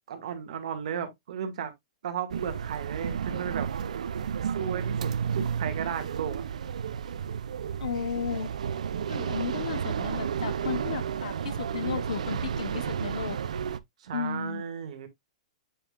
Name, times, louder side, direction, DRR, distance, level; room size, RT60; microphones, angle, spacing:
voice 1, 0.0-1.7 2.0-3.7 4.5-6.4 14.0-15.1, right 8 dB, 65° right, 1.9 m, -34 dB
sound 1, 2.3-13.8, right 7 dB, 85° right, 0.6 m, -32 dB
voice 2, 7.8-8.5 9.1-13.4 14.1-14.6, left 7 dB, 75° left, 1.0 m, -34 dB
7.8 x 5.1 x 2.4 m
hypercardioid pair, 140°, 4 cm